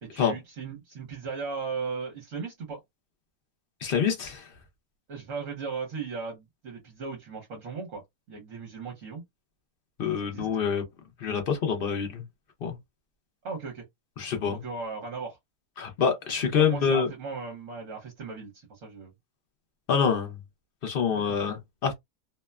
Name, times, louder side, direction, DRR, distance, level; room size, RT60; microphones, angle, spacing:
voice 1, 0.0-2.8 5.1-8.0 8.3-9.2 10.2-10.5 13.4-13.8 14.5-15.4 16.6-19.1 21.3-21.4, right 5 dB, 60° right, 1.1 m, -37 dB
voice 2, 3.8-4.5 10.0-10.8 11.2-12.2 12.6-12.8 14.2-14.6 15.8-17.1 19.9-20.4 20.8-21.9, left 6 dB, 70° left, 0.5 m, -26 dB
2.8 x 2.1 x 2.2 m
omnidirectional pair, 1.7 m